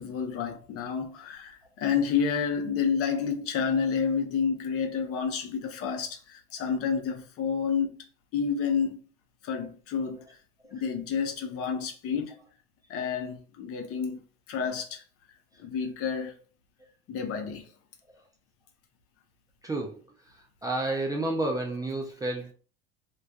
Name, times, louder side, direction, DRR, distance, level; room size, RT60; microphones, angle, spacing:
voice 1, 0.0-7.9 8.3-9.0 9.4-10.2 10.7-12.4 12.9-14.2 14.5-15.0 15.6-16.3 17.1-17.7, left 6 dB, 50° left, 0.6 m, -29 dB
voice 2, 19.6-20.0 20.3-22.5, right 2 dB, 15° right, 0.3 m, -31 dB
2.2 x 2.2 x 2.6 m
supercardioid pair, 105°, 30 cm